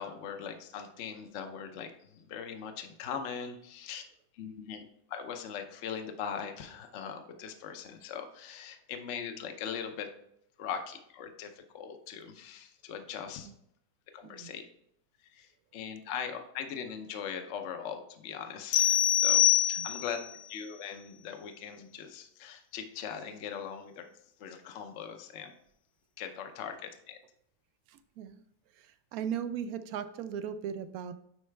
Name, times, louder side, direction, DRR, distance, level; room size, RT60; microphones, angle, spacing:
voice 1, 0.0-4.0 4.3-4.8 5.1-10.1 10.6-13.5 14.1-14.6 15.3-20.2 20.5-24.0 24.4-25.5 26.2-27.2, left 7 dB, 60° left, 6 dB, 0.8 m, -40 dB
sound 1, 18.7-20.3, left 12 dB, 80° left, 1.2 m, -24 dB
voice 2, 27.9-28.4 28.8-31.1, right 8 dB, 70° right, 11 dB, 0.9 m, -37 dB
9.4 x 4.2 x 3.3 m, 0.74 s
omnidirectional pair, 1.8 m